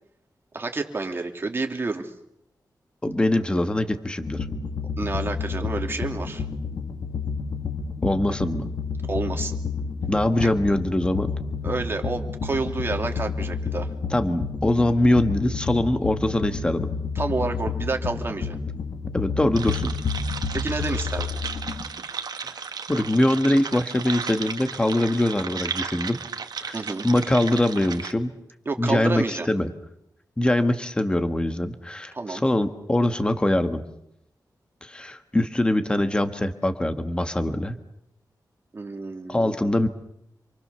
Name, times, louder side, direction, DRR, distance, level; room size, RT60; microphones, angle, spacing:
voice 1, 0.5-2.1 5.0-6.4 8.3-8.4 9.1-9.6 11.6-13.9 17.1-18.6 20.5-21.4 26.7-27.1 28.7-29.5 32.1-32.4 38.7-39.7, right 3 dB, 30° right, 4 dB, 2.6 m, -29 dB
voice 2, 3.0-4.5 8.0-8.6 10.1-11.3 14.1-16.9 19.1-19.9 22.6-26.2 26.6-26.8 27.0-28.3 28.8-29.7 30.4-33.8 34.8-37.8 39.3-39.9, left 1 dB, 15° left, 8 dB, 1.4 m, -23 dB
sound 1, 4.2-21.8, left 5 dB, 90° left, 2.4 m, -30 dB
sound 2, 19.5-28.1, right 6 dB, 70° right, 1.7 m, -34 dB
27.5 x 24.0 x 6.9 m, 0.79 s
wide cardioid pair, 175°, 7 cm